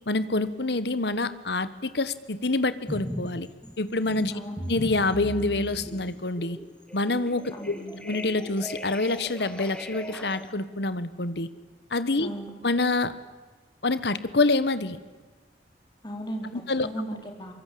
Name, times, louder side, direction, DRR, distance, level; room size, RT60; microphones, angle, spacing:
voice 1, 0.1-3.5 3.8-4.3 4.7-6.6 6.9-7.8 8.0-11.5 11.9-12.3 12.6-13.1 13.8-15.0 16.5-16.9, left 2 dB, 60° left, 14 dB, 1.4 m, -26 dB
sound 1, 2.9-3.3 3.6-10.5, equal, 5° left, 2.0 m, -38 dB
voice 2, 4.3-4.6 7.5-8.0 12.2-12.5 16.0-16.5 16.8-17.5, right 1 dB, 25° left, 3 dB, 4.1 m, -36 dB
24.5 x 22.5 x 8.6 m, 1.4 s
head